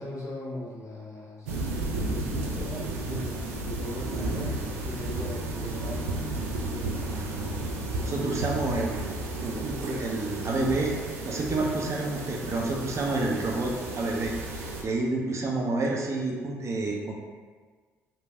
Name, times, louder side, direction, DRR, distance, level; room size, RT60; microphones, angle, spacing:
voice 1, 0.0-1.7 2.1-6.2 6.7-7.3, left 1 dB, 45° left, -6 dB, 0.7 m, -39 dB
sound 1, 1.5-14.8, right 2 dB, 85° right, 0.3 m, -33 dB
voice 2, 4.2-4.5 7.1-7.6 8.0-9.1 9.4-10.9 11.3-17.1, right 2 dB, 40° right, -1 dB, 0.6 m, -29 dB
3.1 x 2.6 x 2.3 m, 1.5 s
hypercardioid pair, 50°, 8 cm